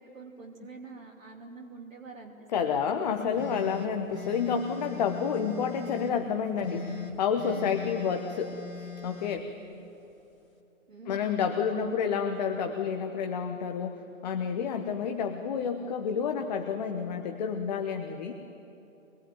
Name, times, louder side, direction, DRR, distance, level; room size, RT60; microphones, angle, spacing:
voice 1, 0.0-2.8 7.6-7.7 10.9-11.8 14.6-14.8, right 4 dB, 65° right, 2 dB, 2.9 m, -47 dB
voice 2, 2.5-9.5 11.1-18.3, left 6 dB, 30° left, 6 dB, 1.1 m, -30 dB
sound 1, 3.3-6.2 6.6-9.4, left 5 dB, 75° left, 2.9 m, -41 dB
24.0 x 21.0 x 9.4 m, 3.0 s
figure-of-eight pair, 130°, 41 cm